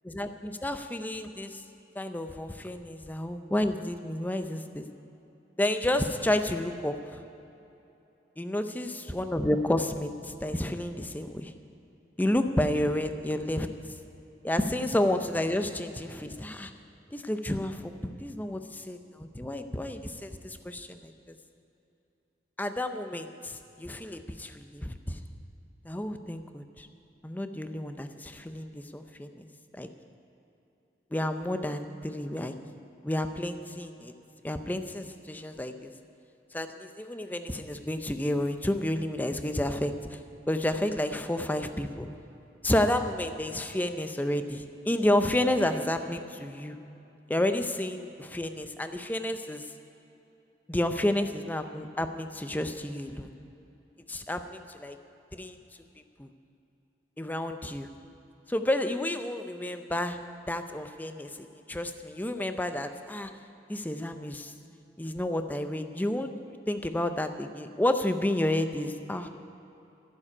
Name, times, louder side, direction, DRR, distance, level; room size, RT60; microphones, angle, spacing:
voice 1, 0.0-1.6 2.0-4.9 5.6-7.2 8.4-11.5 12.2-13.7 14.4-16.7 17.1-21.1 22.6-25.2 25.8-26.9 27.2-29.5 29.8-29.9 31.1-32.5 33.0-34.1 34.4-35.9 36.5-40.2 40.5-42.1 42.6-46.8 47.3-49.6 50.7-53.3 54.1-55.0 55.3-55.6 56.2-56.3 57.2-57.9 58.5-60.2 60.5-61.4 61.7-63.3 63.7-64.5 65.0-69.3, left 1 dB, 10° left, 8 dB, 0.5 m, -30 dB
11.0 x 7.5 x 9.8 m, 2.9 s
head